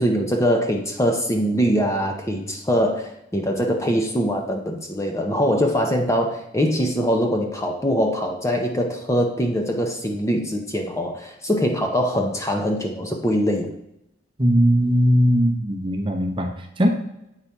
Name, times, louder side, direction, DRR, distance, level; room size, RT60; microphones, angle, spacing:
voice 1, 0.0-13.7, equal, 15° left, 3 dB, 0.7 m, -22 dB
voice 2, 14.4-16.9, equal, 25° right, 3 dB, 0.9 m, -19 dB
8.6 x 4.1 x 4.6 m, 0.83 s
head